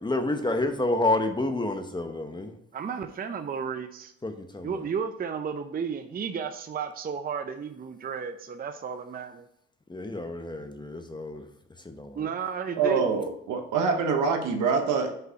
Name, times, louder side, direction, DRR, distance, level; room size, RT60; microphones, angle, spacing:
voice 1, 0.0-2.5 4.2-4.8 9.9-11.5 11.8-12.3, left 2 dB, 15° left, 6 dB, 0.8 m, -29 dB
voice 2, 2.7-4.1 4.6-9.5 12.1-13.2, right 6 dB, 30° right, 8 dB, 0.5 m, -33 dB
voice 3, 12.7-15.1, right 5 dB, 90° right, 4 dB, 1.1 m, -25 dB
5.6 x 3.9 x 5.6 m, 0.73 s
cardioid pair, 90°, 30 cm